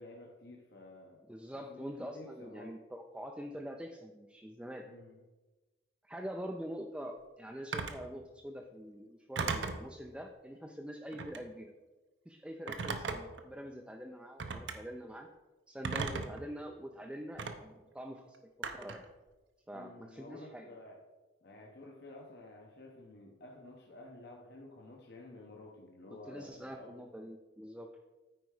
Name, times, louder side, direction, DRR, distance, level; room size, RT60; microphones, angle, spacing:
voice 1, 0.0-1.2 1.5-2.7 4.8-5.2 19.7-21.0 21.4-27.3, left 2 dB, 55° left, 0 dB, 0.9 m, -52 dB
voice 2, 1.3-4.8 6.0-11.7 12.3-15.3 15.7-19.0 19.7-20.7 26.1-27.9, equal, 5° right, 2 dB, 0.4 m, -45 dB
Telephone, 7.7-8.0 9.4-9.9 11.1-11.5 12.7-13.4 14.4-14.8 15.8-16.4 17.4-17.5 18.6-19.0, right 4 dB, 65° right, 0.7 m, -36 dB
9.2 x 4.6 x 4.8 m, 1.2 s
head